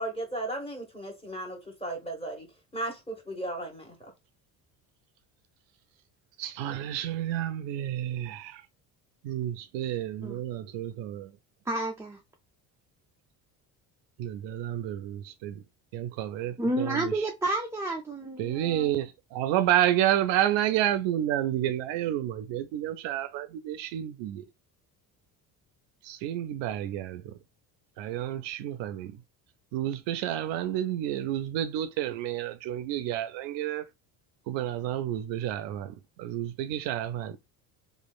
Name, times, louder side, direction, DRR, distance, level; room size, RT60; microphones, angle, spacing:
voice 1, 0.0-2.5 2.7-4.1, right 1 dB, 10° left, 1.6 m, -36 dB
voice 2, 6.4-8.6 9.2-11.4 14.2-15.6 15.9-17.3 18.4-19.1 19.3-24.4 26.0-27.3 28.0-29.2 29.7-33.9 34.5-37.4, right 12 dB, 70° right, 0.5 m, -30 dB
voice 3, 11.7-12.2 16.6-18.9, right 2 dB, 5° right, 0.4 m, -30 dB
3.0 x 2.5 x 2.3 m
supercardioid pair, 80°, 46 cm